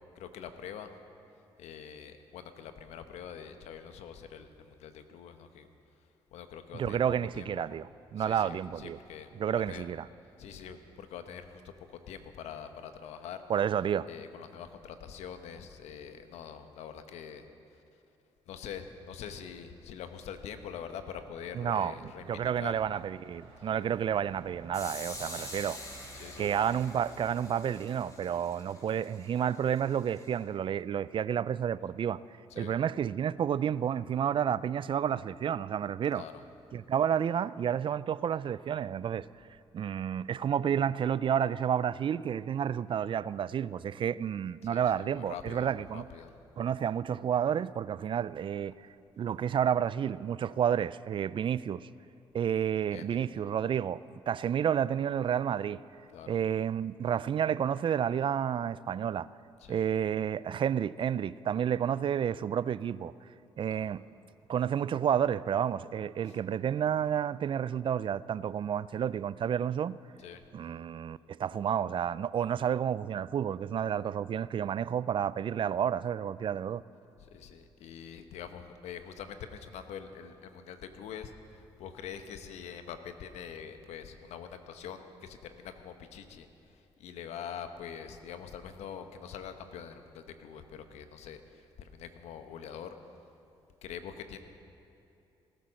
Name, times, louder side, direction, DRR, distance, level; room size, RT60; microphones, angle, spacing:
voice 1, 0.1-0.9 1.6-5.7 6.3-7.7 8.2-9.3 9.7-9.9 10.4-13.4 14.1-17.4 17.7-17.8 18.5-22.8 23.6-23.7 26.1-26.5 32.5-32.7 36.1-36.4 44.6-46.4 52.9-53.3 56.1-56.4 59.6-59.9 63.6-63.9 66.3-66.4 70.2-70.4 77.2-93.0 93.8-94.4, left 8 dB, 80° left, 1.0 m, -45 dB
voice 2, 6.7-7.9 8.1-9.0 9.4-10.1 13.5-14.1 21.5-21.9 22.3-25.8 26.4-32.2 32.6-36.2 36.7-39.3 39.7-46.0 46.6-48.8 49.2-51.9 52.3-55.8 56.3-59.3 59.7-63.1 63.6-64.0 64.5-70.0 70.5-76.8, right 8 dB, 50° right, 0.4 m, -30 dB
Truck, 19.7-28.9, right 4 dB, 80° right, 4.4 m, -56 dB
sound 1, 24.7-30.4, left 1 dB, 30° left, 3.3 m, -46 dB
18.0 x 10.5 x 6.4 m
supercardioid pair, 65°, 11 cm